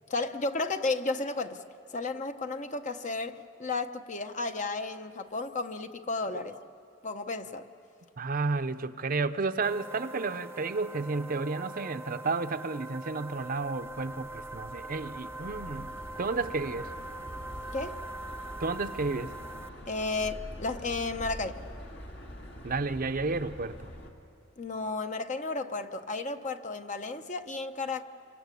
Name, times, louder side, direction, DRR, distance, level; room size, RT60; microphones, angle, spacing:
voice 1, 0.1-1.6 1.9-6.6 7.0-7.6 17.7-18.0 19.9-21.6 24.6-28.1, left 3 dB, 40° left, 8 dB, 0.9 m, -33 dB
voice 2, 8.2-16.9 18.6-19.3 22.6-23.8, right 3 dB, 50° right, 10 dB, 0.7 m, -32 dB
sound 1, 9.6-19.7, right 2 dB, 15° right, 0.6 m, -43 dB
sound 2, 13.6-24.1, equal, 65° left, 2.4 m, -45 dB
27.5 x 24.5 x 8.4 m, 2.8 s
head